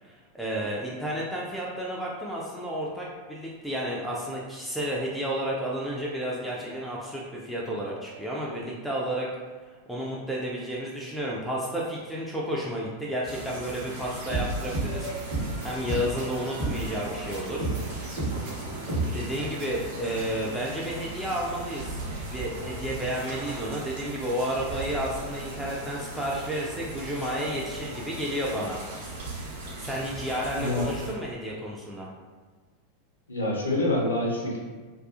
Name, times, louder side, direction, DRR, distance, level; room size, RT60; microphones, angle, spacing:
voice 1, 0.0-9.3 9.7-15.1 15.6-17.7 19.1-22.0 22.3-28.8 29.8-32.1, equal, ahead, -5 dB, 0.3 m, -31 dB
sound 1, 13.2-31.1, right 2 dB, 55° right, 0.6 m, -38 dB
sound 2, 14.2-19.6, right 2 dB, 35° right, 0.9 m, -31 dB
voice 2, 30.6-30.9 33.3-34.6, left 1 dB, 75° left, -2 dB, 0.5 m, -26 dB
2.3 x 2.3 x 2.4 m, 1.5 s
figure-of-eight pair, 90°, 0 cm